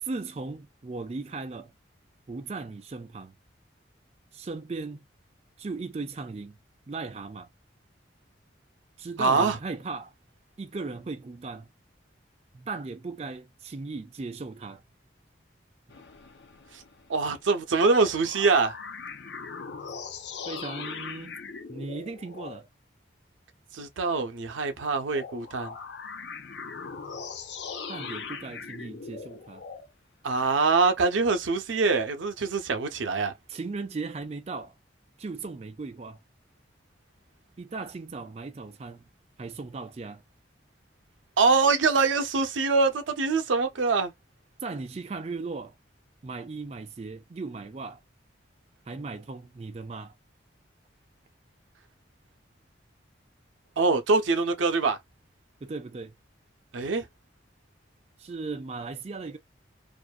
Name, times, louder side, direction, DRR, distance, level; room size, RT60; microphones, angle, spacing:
voice 1, 0.0-1.7 2.3-3.3 4.3-5.0 5.6-6.6 6.9-7.5 9.0-10.1 10.6-11.7 12.5-14.8 20.5-21.4 21.7-22.7 27.9-29.6 33.5-34.7 35.2-36.2 37.6-39.1 39.4-40.2 44.6-45.7 46.2-48.0 48.9-50.1 55.6-56.2 58.2-59.4, right 3 dB, 35° right, 0.4 m, -37 dB
voice 2, 9.2-9.6 17.1-18.7 23.7-25.7 30.2-33.3 41.4-44.1 53.8-55.0 56.7-57.0, right 4 dB, 90° right, 0.6 m, -24 dB
sound 1, 15.9-17.5 17.8-22.6 25.1-29.9, left 5 dB, 65° left, 0.5 m, -40 dB
2.5 x 2.2 x 2.3 m
head